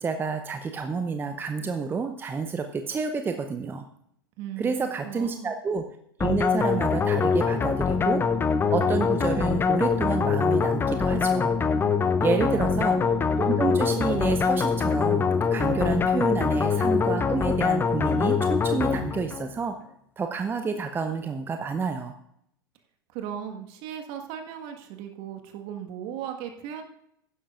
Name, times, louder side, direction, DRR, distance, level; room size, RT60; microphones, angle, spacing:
voice 1, 0.0-3.9 4.6-5.8 6.2-8.2 8.7-11.5 12.2-13.0 13.4-19.7 20.2-22.1, right 5 dB, 15° right, 6 dB, 0.7 m, -29 dB
voice 2, 4.4-5.5 12.2-13.1 23.1-26.8, right 9 dB, 50° right, 4 dB, 1.6 m, -37 dB
sound 1, 6.2-19.5, left 5 dB, 20° left, 0.7 m, -24 dB
15.5 x 11.0 x 2.5 m, 0.73 s
figure-of-eight pair, 90°, 12 cm